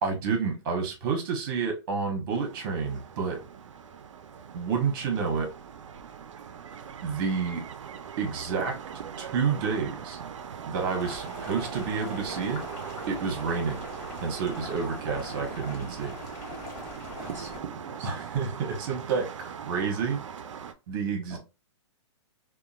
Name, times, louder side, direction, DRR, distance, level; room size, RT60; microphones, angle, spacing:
voice 1, 0.0-3.4 4.5-5.5 7.0-7.6 8.2-8.8 9.2-10.2 10.7-12.6 13.1-13.8 14.2-16.1 18.0-20.2 20.9-21.4, right 5 dB, 45° right, 3 dB, 1.0 m, -29 dB
sound 1, 2.3-20.7, right 7 dB, 85° right, 0.5 m, -40 dB
Boiling, 10.8-17.6, left 3 dB, 35° left, 1.4 m, -42 dB
voice 2, 17.2-18.3 21.3-21.4, right 3 dB, 15° right, -4 dB, 0.6 m, -46 dB
2.8 x 2.2 x 2.3 m, 0.27 s
hypercardioid pair, 145°, 16 cm